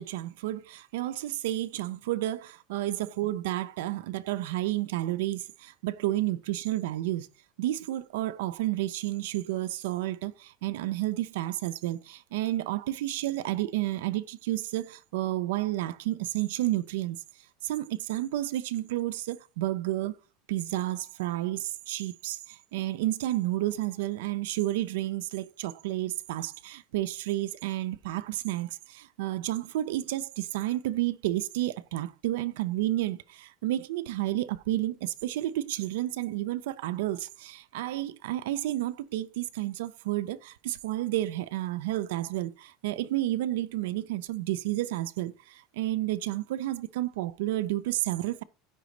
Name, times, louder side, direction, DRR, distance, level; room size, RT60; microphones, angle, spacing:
voice 1, 0.0-7.3 7.6-17.2 17.6-20.1 20.5-48.4, right 15 dB, 90° right, 0.4 m, -31 dB
9.9 x 3.9 x 3.2 m
cardioid pair, 170°, 0 cm